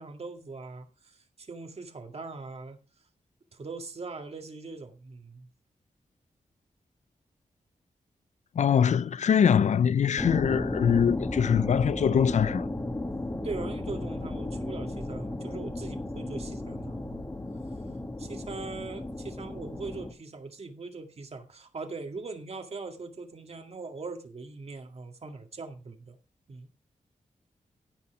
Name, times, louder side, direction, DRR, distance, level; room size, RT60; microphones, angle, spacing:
voice 1, 0.0-2.8 3.5-5.5 13.4-17.3 18.2-26.2 26.5-26.7, right 3 dB, 50° right, 2.1 m, -41 dB
voice 2, 8.6-12.7, left 8 dB, 65° left, 0.4 m, -23 dB
sound 1, 10.2-20.1, left 2 dB, 20° left, 1.8 m, -34 dB
15.5 x 5.7 x 4.8 m
wide cardioid pair, 85°, 13 cm